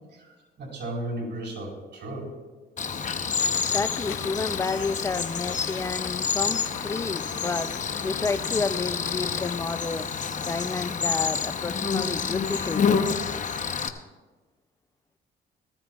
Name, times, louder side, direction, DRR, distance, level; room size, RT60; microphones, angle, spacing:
voice 1, 0.1-2.3, right 1 dB, 60° right, -2 dB, 4.3 m, -35 dB
Cricket, 2.8-13.9, left 6 dB, 40° left, 0.8 m, -28 dB
sound 1, 3.4-9.6, left 11 dB, 75° left, 0.6 m, -40 dB
voice 2, 3.6-7.7 8.0-10.1 10.5-13.1, left 4 dB, 15° left, 13 dB, 0.4 m, -30 dB
18.5 x 14.5 x 2.4 m, 1.3 s
cardioid pair, 90°, 20 cm